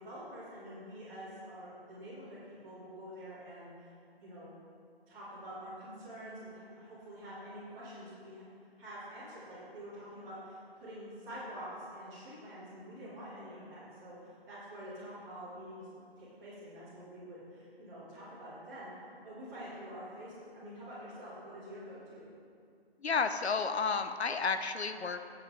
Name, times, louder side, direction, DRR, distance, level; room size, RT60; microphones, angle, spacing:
voice 1, 0.0-3.9 4.2-4.5 5.1-8.4 8.8-15.9 16.2-22.3, equal, 5° right, -13 dB, 1.7 m, -47 dB
voice 2, 23.0-25.2, left 5 dB, 85° left, 9 dB, 0.8 m, -31 dB
13.0 x 8.6 x 3.3 m, 2.4 s
hypercardioid pair, 175°, 32 cm